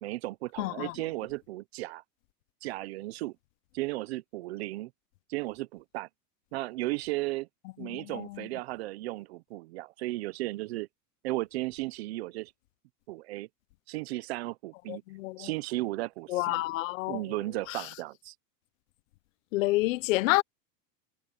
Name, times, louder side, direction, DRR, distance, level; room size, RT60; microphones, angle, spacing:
voice 1, 0.0-2.0 2.6-3.4 3.7-4.9 5.3-6.1 6.5-7.5 7.8-10.9 11.2-12.5 13.1-13.5 13.9-15.0 15.4-16.6 17.1-18.3, right 19 dB, 45° right, 0.4 m, -35 dB
voice 2, 0.6-0.9 7.9-8.2 14.9-15.5 16.3-17.2 17.7-17.8 19.5-20.4, left 20 dB, 55° left, 0.5 m, -29 dB
supercardioid pair, 170°, 48 cm